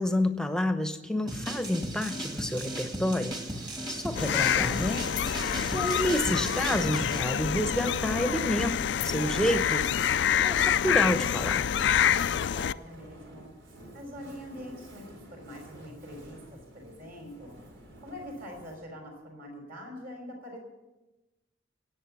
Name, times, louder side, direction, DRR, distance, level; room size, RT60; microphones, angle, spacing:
voice 1, 0.0-3.4 3.9-5.4 5.7-8.7 9.0-9.8 10.4-11.6, equal, 5° left, 8 dB, 0.9 m, -29 dB
Fire, 1.0-18.9, right 1 dB, 80° right, 3.7 m, -51 dB
sound 1, 1.3-7.2, right 1 dB, 20° right, 1.8 m, -37 dB
sound 2, 4.1-12.7, left 9 dB, 65° left, 0.4 m, -27 dB
voice 2, 12.0-13.5 13.9-17.6 18.0-20.6, left 1 dB, 50° right, 2 dB, 5.5 m, -44 dB
17.5 x 8.5 x 7.2 m, 1.0 s
head